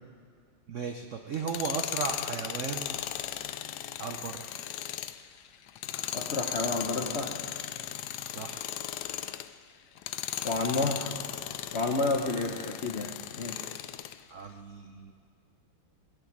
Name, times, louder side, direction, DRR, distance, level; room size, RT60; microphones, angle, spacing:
voice 1, 0.7-3.0 4.0-4.6 8.3-8.7 10.7-10.9 14.3-15.1, right 6 dB, 70° right, 5 dB, 0.7 m, -36 dB
Tools, 1.3-9.5 10.0-14.2, left 11 dB, 75° left, 0.9 m, -37 dB
voice 2, 6.1-7.3 10.4-11.1 11.7-13.1 13.4-13.6, left 3 dB, 55° left, 2 dB, 0.7 m, -30 dB
20.5 x 9.0 x 7.3 m, 2.2 s
omnidirectional pair, 2.3 m